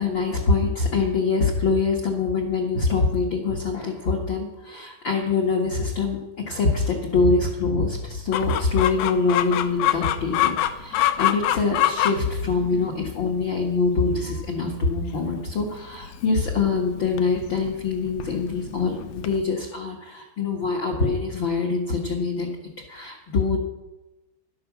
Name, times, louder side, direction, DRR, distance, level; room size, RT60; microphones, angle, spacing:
voice 1, 0.0-22.5 22.9-23.6, left 4 dB, 60° left, 0 dB, 1.2 m, -24 dB
Chicken rooster, 8.3-19.4, left 13 dB, 80° left, 2.1 m, -27 dB
12.5 x 12.0 x 6.1 m, 0.99 s
omnidirectional pair, 5.0 m